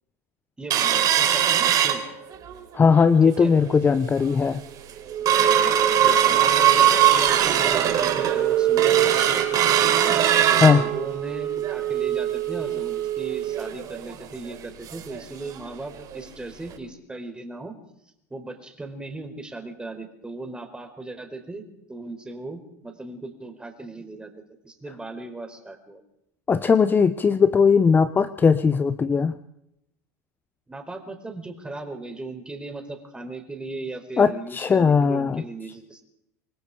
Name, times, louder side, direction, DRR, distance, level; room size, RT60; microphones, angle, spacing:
voice 1, 0.6-2.0 3.2-3.5 5.6-17.8 18.3-21.6 21.9-24.3 24.6-26.0 30.7-36.0, right 2 dB, 10° right, 6 dB, 4.7 m, -37 dB
sound 1, 0.7-2.6 3.0-3.1 3.4-3.8 4.2-4.3 4.7-15.2 15.5-15.6 16.0-16.2 16.7-16.8, right 10 dB, 45° right, 4.0 m, -21 dB
voice 2, 2.7-4.6 10.6-10.8 26.5-29.4 34.2-35.4, left 5 dB, 20° left, 12 dB, 1.0 m, -18 dB
26.5 x 20.0 x 5.1 m, 0.81 s
hypercardioid pair, 100°, 9 cm